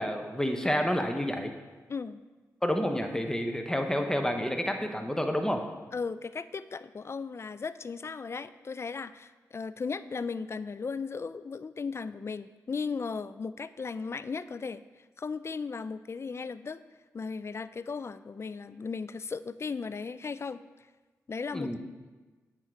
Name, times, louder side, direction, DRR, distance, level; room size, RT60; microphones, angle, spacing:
voice 1, 0.0-1.5 2.6-5.6 21.5-21.8, equal, 10° left, 5 dB, 0.9 m, -29 dB
voice 2, 5.9-14.8 15.2-16.8 17.1-20.6 21.3-21.8, left 5 dB, 40° left, 14 dB, 0.3 m, -36 dB
8.8 x 3.8 x 4.5 m, 1.3 s
supercardioid pair, 40°, 7 cm